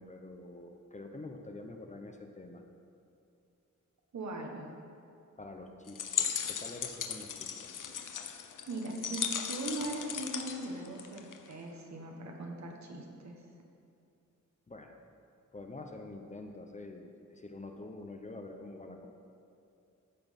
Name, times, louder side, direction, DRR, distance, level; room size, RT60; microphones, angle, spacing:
voice 1, 0.0-2.6 5.4-7.7 14.7-15.0 15.5-19.1, left 2 dB, 25° left, 4 dB, 0.7 m, -46 dB
voice 2, 4.1-4.7 8.7-13.4, right 2 dB, 65° right, 1 dB, 1.5 m, -40 dB
sound 1, 5.9-11.5, left 8 dB, 85° left, 0.7 m, -37 dB
15.0 x 6.1 x 5.3 m, 2.6 s
wide cardioid pair, 175°, 30 cm